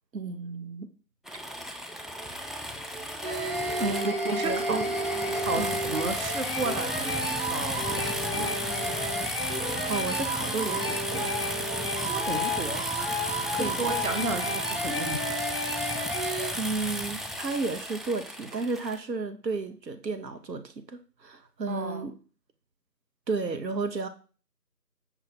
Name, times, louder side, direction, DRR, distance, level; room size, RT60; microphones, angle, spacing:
voice 1, 0.1-0.9 3.8-4.1 4.4-4.9 5.6-5.8 9.5-11.4 13.6-13.8 16.1-22.1 23.3-24.1, right 3 dB, 90° right, 0.8 m, -33 dB
sound 1, 1.3-19.0, equal, ahead, 0.3 m, -34 dB
sound 2, 1.9-14.9, right 5 dB, 75° right, 1.1 m, -47 dB
sound 3, 3.2-16.5, equal, 35° right, 0.9 m, -32 dB
voice 2, 3.8-4.8 5.3-8.5 12.1-12.8 13.6-15.2 21.7-22.1, right 3 dB, 55° right, 0.5 m, -33 dB
5.6 x 2.4 x 3.9 m
figure-of-eight pair, 175°, 49 cm